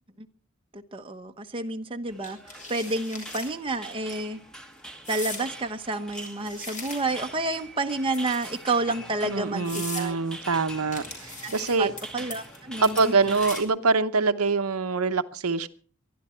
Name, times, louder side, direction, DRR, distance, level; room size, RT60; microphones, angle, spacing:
voice 1, 0.7-2.4 2.7-4.4 5.1-10.2 11.4-11.5 11.8-11.9 12.1-13.2, right 2 dB, 25° right, 5 dB, 1.0 m, -30 dB
sound 1, 2.1-13.6, right 1 dB, 5° left, 1.7 m, -43 dB
sound 2, 2.2-3.5 3.9-4.1 5.0-5.5 6.1-7.3 8.1-8.7 9.2-9.3 9.6-10.1 10.9-12.0 12.3-12.6 12.8-13.8, left 3 dB, 35° left, 5.4 m, -39 dB
voice 2, 9.2-11.9 12.8-15.7, right 4 dB, 90° right, 10 dB, 0.9 m, -24 dB
23.5 x 11.5 x 4.5 m, 0.41 s
head